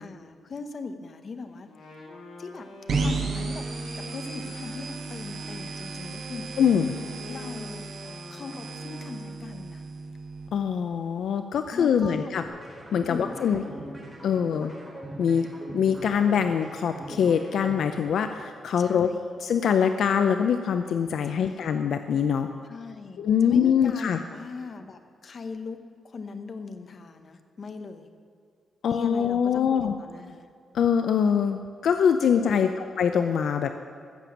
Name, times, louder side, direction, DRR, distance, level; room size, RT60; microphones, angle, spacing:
voice 1, 0.0-1.7 2.4-2.6 3.0-3.6 3.9-6.5 7.3-7.9 8.3-9.8 11.7-12.4 13.1-13.9 18.8-19.3 21.2-21.6 22.6-25.8 26.0-28.1 28.8-30.5 32.3-32.9, left 4 dB, 45° left, 8 dB, 0.9 m, -39 dB
Wind instrument woodwind instrument, 1.6-9.6, left 1 dB, 90° left, 3.8 m, -45 dB
sound 1, 2.9-10.5, right 3 dB, 55° right, 1.8 m, -34 dB
voice 2, 6.6-7.0 10.5-12.4 12.9-13.6 14.2-14.7 15.2-15.5 15.7-19.1 19.4-22.5 23.2-24.2 28.8-29.9 30.7-32.7 33.0-33.8, left 7 dB, 70° left, 8 dB, 0.5 m, -23 dB
sound 2, 12.4-18.5, right 1 dB, 15° right, 3.3 m, -41 dB
15.0 x 7.0 x 7.3 m, 2.2 s
cardioid pair, 130°, 0 cm